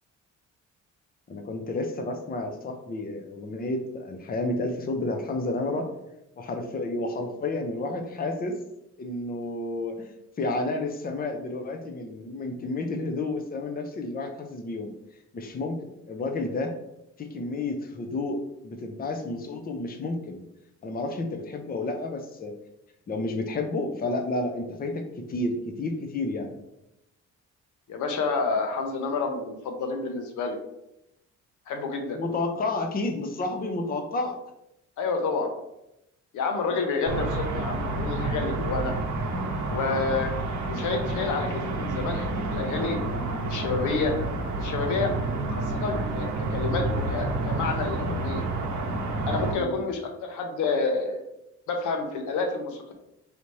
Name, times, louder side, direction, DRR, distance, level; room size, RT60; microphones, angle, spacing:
voice 1, 1.3-5.9 6.4-8.6 9.0-14.9 15.3-15.8 16.1-16.7 17.2-20.4 20.8-22.6 23.1-26.6 32.1-34.4 49.5-49.8, left 2 dB, 30° left, 5 dB, 0.6 m, -31 dB
voice 2, 27.9-30.6 31.7-32.2 35.0-35.5 36.3-38.9 39.7-40.3 40.6-43.0 43.4-44.1 44.6-45.1 45.5-48.5 49.3-51.2 51.7-52.9, left 4 dB, 80° left, 4 dB, 0.9 m, -29 dB
sound 1, 37.1-49.5, right 2 dB, 70° right, 0.9 m, -29 dB
4.9 x 2.8 x 3.1 m, 0.83 s
cardioid pair, 90°, 30 cm